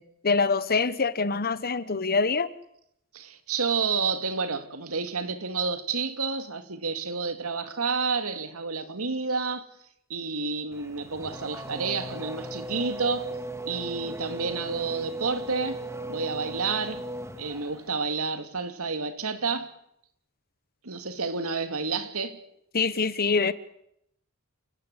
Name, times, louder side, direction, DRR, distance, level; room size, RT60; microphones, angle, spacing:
voice 1, 0.0-2.5 22.7-23.5, left 4 dB, 45° left, 1.1 m, -25 dB
voice 2, 3.1-9.6 10.1-13.3 13.7-15.8 16.1-17.0 17.4-19.7 20.8-22.4, right 4 dB, 85° right, 2.4 m, -30 dB
Race car auto racing / Accelerating revving vroom, 10.7-18.0, right 1 dB, 15° right, 1.9 m, -37 dB
29.5 x 18.0 x 8.3 m
head